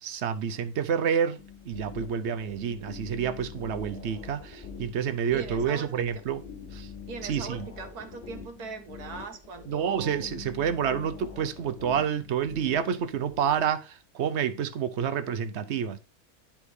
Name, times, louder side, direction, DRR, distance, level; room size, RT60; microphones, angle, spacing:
voice 1, 0.0-6.4 6.7-6.9 7.3-7.6 9.7-16.0, right 8 dB, 60° right, 0.8 m, -29 dB
sound 1, 1.4-13.7, left 6 dB, 25° left, 3.4 m, -44 dB
voice 2, 5.3-6.2 7.1-10.3, right 4 dB, 85° right, 1.7 m, -40 dB
10.5 x 3.5 x 4.8 m
omnidirectional pair, 1.6 m